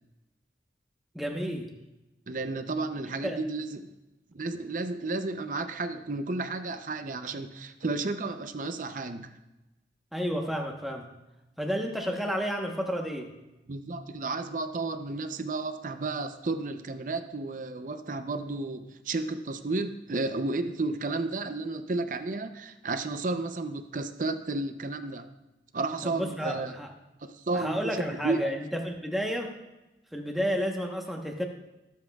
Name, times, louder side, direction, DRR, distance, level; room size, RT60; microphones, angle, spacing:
voice 1, 1.1-1.7 3.2-3.4 10.1-11.1 11.6-13.3 26.0-26.9 27.5-29.6 30.1-31.4, equal, ahead, 1 dB, 1.0 m, -31 dB
voice 2, 2.3-3.9 4.3-9.3 13.7-25.2 25.7-26.7 27.2-28.5, right 3 dB, 45° right, 9 dB, 0.6 m, -32 dB
18.0 x 7.4 x 2.3 m, 1.0 s
head